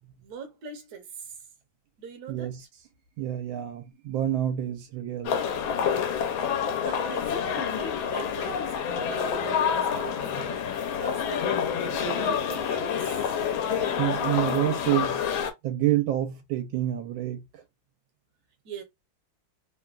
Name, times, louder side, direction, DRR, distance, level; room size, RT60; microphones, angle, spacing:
voice 1, 0.2-1.4 2.0-2.5 6.8-10.7 11.0-13.5 18.6-18.8, right 5 dB, 60° right, 1.2 m, -41 dB
voice 2, 2.3-2.6 3.2-5.4 14.0-15.2 15.6-17.6, right 13 dB, 80° right, 1.3 m, -28 dB
sound 1, 5.3-15.5, left 7 dB, 80° left, 1.4 m, -28 dB
3.3 x 2.2 x 2.3 m
omnidirectional pair, 2.2 m